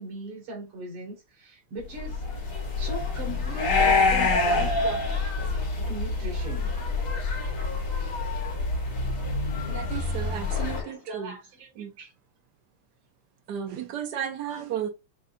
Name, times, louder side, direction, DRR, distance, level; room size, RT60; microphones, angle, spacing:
voice 1, 0.0-5.0 5.9-6.7 10.8-12.1 14.5-14.8, right 1 dB, 85° right, 2.8 m, -39 dB
sound 1, 2.0-10.8, left 3 dB, 70° left, 2.1 m, -26 dB
voice 2, 9.7-11.4 11.8-12.0 13.5-14.9, right 9 dB, 65° right, 1.1 m, -34 dB
sound 2, 10.5-11.1, left 6 dB, 85° left, 1.9 m, -41 dB
6.5 x 2.7 x 2.5 m
omnidirectional pair, 2.3 m